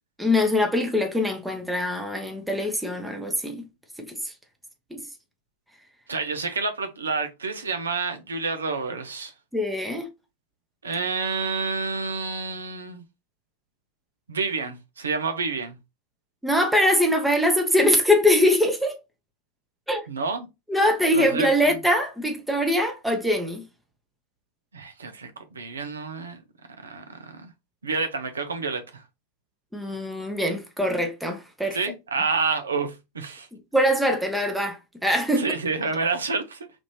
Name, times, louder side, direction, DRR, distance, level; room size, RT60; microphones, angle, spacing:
voice 1, 0.2-3.6 4.1-4.3 4.9-5.0 9.5-10.1 16.4-19.0 19.9-20.0 20.7-23.6 29.7-31.8 33.5-35.5, left 1 dB, 5° right, 0.8 m, -23 dB
voice 2, 6.1-9.3 10.8-13.0 14.3-15.8 20.1-20.5 21.1-21.5 24.7-26.4 26.8-27.5 27.8-29.0 31.7-33.5 35.4-36.7, right 4 dB, 70° right, 0.5 m, -29 dB
3.4 x 2.5 x 3.1 m
figure-of-eight pair, 90°, 0 cm